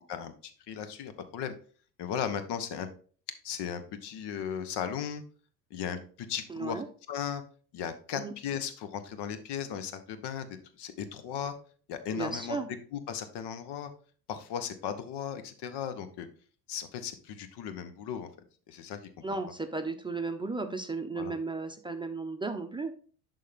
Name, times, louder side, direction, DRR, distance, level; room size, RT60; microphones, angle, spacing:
voice 1, 0.1-1.5 2.0-2.9 3.4-5.2 5.7-6.8 7.1-7.4 7.7-11.5 11.9-12.6 12.9-13.9 14.3-16.3 16.7-18.3 18.7-19.0 21.2-21.3, left 8 dB, 55° left, 10 dB, 1.2 m, -36 dB
voice 2, 6.5-6.9 8.1-8.3 12.1-12.7 19.2-22.9, right 3 dB, 10° right, 6 dB, 0.9 m, -34 dB
11.0 x 3.8 x 3.5 m, 0.42 s
hypercardioid pair, 75°, 50 cm